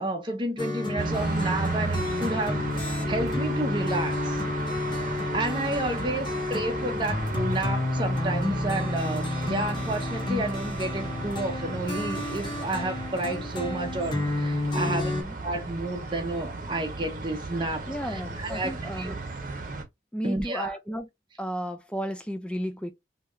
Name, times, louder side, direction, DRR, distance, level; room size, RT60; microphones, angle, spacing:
voice 1, 0.0-4.4 5.3-15.1 15.4-19.1 20.2-20.8, right 2 dB, 25° right, 0.7 m, -31 dB
sound 1, 0.6-15.2, left 2 dB, 25° left, 1.1 m, -30 dB
sound 2, 1.0-19.8, right 3 dB, 50° right, 0.9 m, -35 dB
voice 2, 14.9-15.3 17.9-19.1 20.1-21.1 21.4-22.9, equal, 5° left, 0.4 m, -33 dB
3.4 x 2.8 x 2.5 m
head